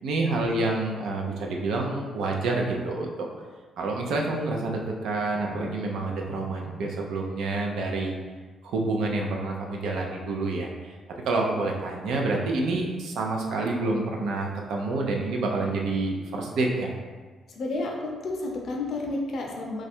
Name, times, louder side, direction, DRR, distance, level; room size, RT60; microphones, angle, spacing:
voice 1, 0.0-3.1 3.8-8.1 8.6-10.9 11.3-16.9, right 2 dB, 70° right, 0 dB, 0.6 m, -28 dB
voice 2, 17.5-19.9, left 2 dB, 45° left, 0 dB, 0.5 m, -31 dB
3.1 x 2.4 x 4.3 m, 1.4 s
cardioid pair, 175°, 0 cm